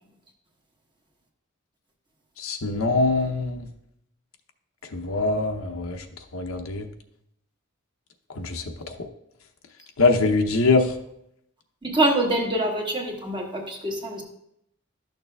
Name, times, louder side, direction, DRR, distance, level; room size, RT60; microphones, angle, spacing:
voice 1, 2.4-3.7 4.9-6.0 6.3-6.9 8.4-9.1 10.0-10.9, left 3 dB, 70° left, 5 dB, 0.8 m, -23 dB
voice 2, 11.8-14.2, right 1 dB, 25° right, 0 dB, 1.2 m, -25 dB
12.0 x 6.6 x 2.3 m, 0.77 s
head